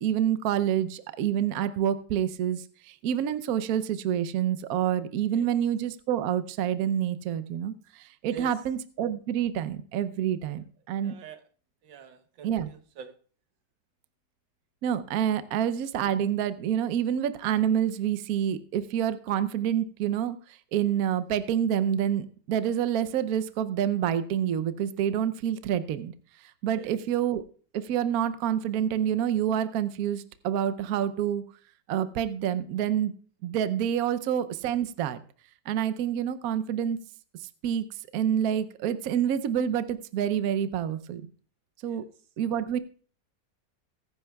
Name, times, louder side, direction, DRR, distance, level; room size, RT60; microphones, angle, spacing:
voice 1, 0.0-11.1 12.4-12.7 14.8-20.4 20.7-26.1 26.6-27.4 27.7-31.4 31.9-33.1 33.4-35.2 35.7-37.0 37.6-37.9 38.1-41.3 41.8-42.0 42.4-42.8, right 9 dB, 65° right, 12 dB, 1.0 m, -27 dB
voice 2, 11.0-11.4 11.8-13.1 26.7-26.9 41.8-42.1, right 6 dB, 85° right, 9 dB, 1.7 m, -45 dB
20.5 x 10.5 x 2.3 m, 0.43 s
omnidirectional pair, 2.0 m